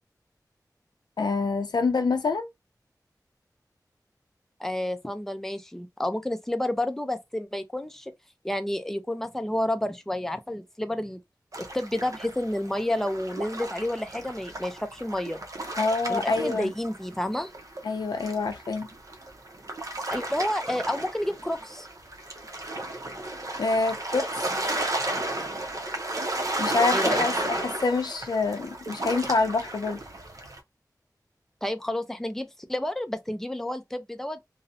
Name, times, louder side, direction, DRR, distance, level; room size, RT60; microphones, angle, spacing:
voice 1, 1.2-2.5 15.7-16.7 17.8-18.9 23.6-24.3 26.6-30.0, left 3 dB, 80° left, 0.5 m, -26 dB
voice 2, 4.6-8.1 8.4-11.2 11.7-15.4 16.1-17.5 20.1-21.9 26.9-27.3 31.6-34.4, left 1 dB, 5° left, 0.4 m, -30 dB
sound 1, 11.5-17.2 17.5-30.6, right 2 dB, 50° right, 0.6 m, -33 dB
2.6 x 2.0 x 2.6 m
wide cardioid pair, 80°, 7 cm